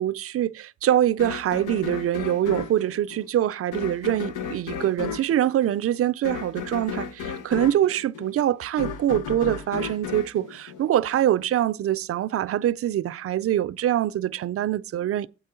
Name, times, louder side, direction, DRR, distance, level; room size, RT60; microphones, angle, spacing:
voice 1, 0.0-15.3, right 12 dB, 50° right, 0.5 m, -24 dB
sound 1, 1.2-11.4, left 7 dB, 85° left, 1.0 m, -34 dB
8.3 x 4.5 x 6.8 m
cardioid pair, 90°, 30 cm